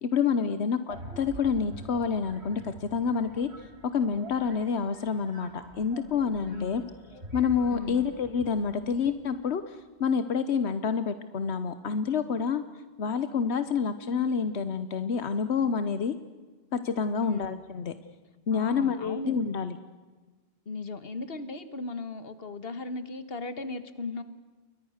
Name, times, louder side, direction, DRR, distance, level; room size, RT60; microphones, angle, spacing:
voice 1, 0.0-3.5 3.9-6.8 7.3-9.6 10.0-12.6 13.0-16.1 16.7-17.9 18.5-19.8, left 6 dB, 85° left, 12 dB, 1.2 m, -28 dB
sound 1, 0.9-9.7, right 1 dB, 80° right, 3.3 m, -47 dB
voice 2, 6.5-6.9 7.7-8.1 17.2-17.6 18.5-19.4 20.7-24.2, left 3 dB, 65° left, 12 dB, 1.8 m, -37 dB
29.5 x 23.0 x 6.5 m, 1.3 s
omnidirectional pair, 1.1 m